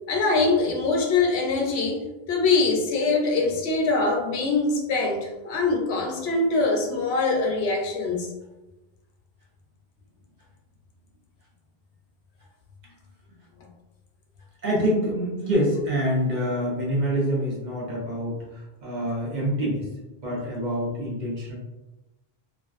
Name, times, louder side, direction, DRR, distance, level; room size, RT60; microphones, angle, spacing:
voice 1, 0.1-2.0 2.3-8.3, left 3 dB, 80° left, 1 dB, 0.8 m, -23 dB
voice 2, 14.6-19.9 20.2-21.5, equal, 50° right, -4 dB, 0.8 m, -26 dB
2.4 x 2.2 x 2.4 m, 1.0 s
omnidirectional pair, 1.1 m